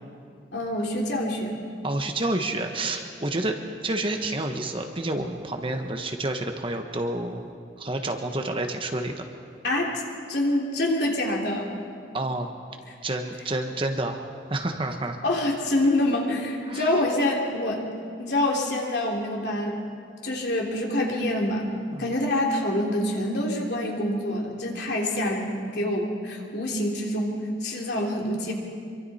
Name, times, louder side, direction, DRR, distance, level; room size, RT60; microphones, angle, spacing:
voice 1, 0.5-1.6 9.6-9.9 10.3-11.7 12.9-13.0 15.2-17.8 18.2-19.8 20.2-21.7 22.0-28.5, left 1 dB, 65° left, -1 dB, 3.2 m, -26 dB
voice 2, 1.8-3.6 3.8-7.5 7.8-9.2 12.1-12.5 13.0-14.2 14.5-15.2 16.7-16.9 21.9-22.1, right 2 dB, 30° right, 4 dB, 1.3 m, -29 dB
25.5 x 24.0 x 4.3 m, 2.3 s
head